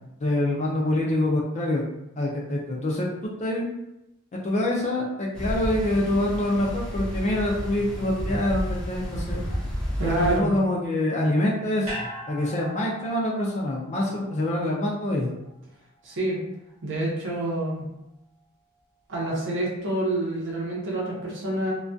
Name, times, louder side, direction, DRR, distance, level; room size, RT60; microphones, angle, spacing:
voice 1, 0.2-1.8 2.2-3.1 3.4-3.7 4.3-9.4 10.0-15.3, left 1 dB, 30° left, -2 dB, 0.3 m, -25 dB
sound 1, 5.3-10.4, equal, 5° left, 0.7 m, -31 dB
voice 2, 10.0-10.5 16.0-16.4 16.8-17.9 19.1-21.7, right 1 dB, 60° right, -4 dB, 0.7 m, -27 dB
sound 2, 11.8-16.2 16.5-16.6, equal, 25° right, 0.8 m, -41 dB
2.2 x 2.2 x 2.5 m, 0.88 s
head